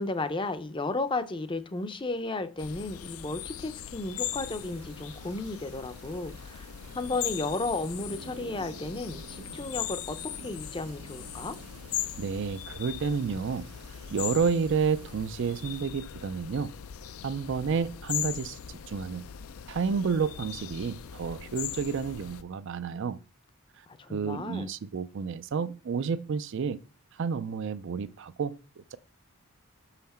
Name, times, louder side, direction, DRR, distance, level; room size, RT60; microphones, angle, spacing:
voice 1, 0.0-6.7 6.9-11.6 24.0-24.7, left 2 dB, 20° left, 0.5 m, -34 dB
sound 1, 2.6-22.4, left 10 dB, 70° left, 0.4 m, -39 dB
sound 2, 4.2-15.8, right 3 dB, 85° right, 1.0 m, -50 dB
voice 2, 12.2-13.7 14.1-16.7 17.2-19.2 19.7-23.2 24.1-26.8 27.2-29.0, right 5 dB, 55° right, 0.4 m, -30 dB
6.5 x 5.7 x 4.2 m
head